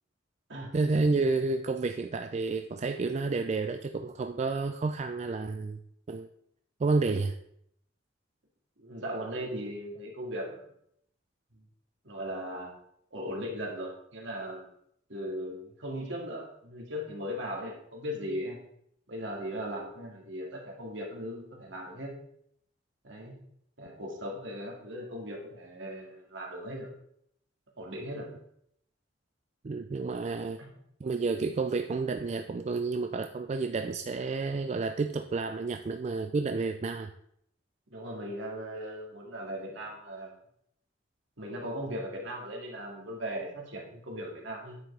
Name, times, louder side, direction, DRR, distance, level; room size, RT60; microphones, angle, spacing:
voice 1, 0.7-5.8 6.1-6.3 6.8-7.4 29.6-30.6 31.0-37.1, right 3 dB, 35° right, 7 dB, 0.4 m, -30 dB
voice 2, 8.8-10.7 12.0-12.7 13.1-14.6 15.1-18.6 19.1-22.2 23.0-23.4 23.8-26.9 27.8-28.3 30.6-30.7 37.9-40.3 41.4-44.8, equal, 75° right, 0 dB, 2.1 m, -38 dB
9.4 x 7.3 x 3.3 m, 0.72 s
head